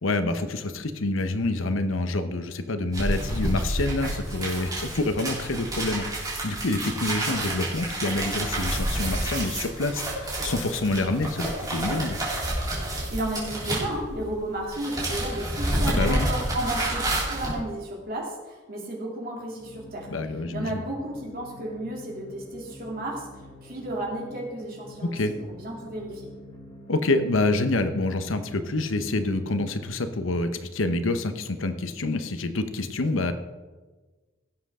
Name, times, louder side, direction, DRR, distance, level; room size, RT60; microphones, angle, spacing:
voice 1, 0.0-12.2 15.9-16.3 20.1-20.8 25.0-25.3 26.9-33.3, left 2 dB, 85° left, 9 dB, 0.9 m, -27 dB
sound 1, 2.9-14.4 14.6-17.5, right 1 dB, 20° right, 3.3 m, -29 dB
voice 2, 12.8-20.1 20.5-23.3 23.6-25.2 25.5-26.3, right 1 dB, 50° right, -2 dB, 2.9 m, -33 dB
sound 2, 19.6-29.9, equal, 25° left, 3.4 m, -47 dB
17.0 x 7.7 x 3.7 m, 1.3 s
head